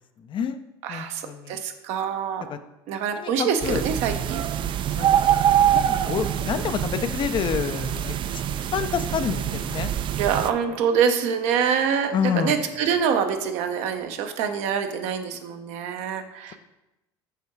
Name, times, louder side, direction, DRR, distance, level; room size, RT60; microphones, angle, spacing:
voice 1, 0.2-0.6 0.9-1.6 2.5-2.6 3.2-3.8 5.0-5.2 5.6-8.1 8.7-9.9 12.1-12.6, left 8 dB, 45° left, 10 dB, 0.5 m, -28 dB
voice 2, 0.8-2.5 2.9-4.4 6.2-6.4 10.2-16.6, right 7 dB, 65° right, 6 dB, 0.7 m, -25 dB
sound 1, 3.6-10.5, right 10 dB, 45° right, 0.4 m, -24 dB
5.6 x 3.6 x 4.6 m, 0.94 s
hypercardioid pair, 70°, 12 cm